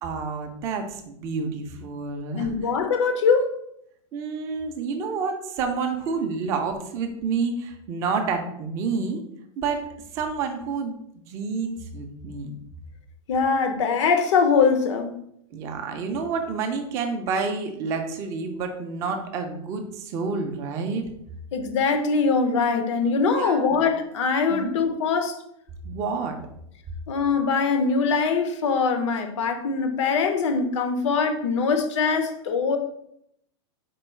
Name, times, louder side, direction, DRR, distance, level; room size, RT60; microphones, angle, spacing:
voice 1, 0.0-2.5 4.1-9.2 9.6-9.8 10.1-12.5 15.5-21.1 23.2-23.8 24.5-24.7 25.8-26.4, right 4 dB, 20° right, 0.4 m, -29 dB
voice 2, 2.3-3.5 13.3-15.2 21.5-25.4 27.1-32.8, left 5 dB, 85° left, 0.7 m, -22 dB
4.4 x 2.3 x 4.3 m
supercardioid pair, 180°, 15 cm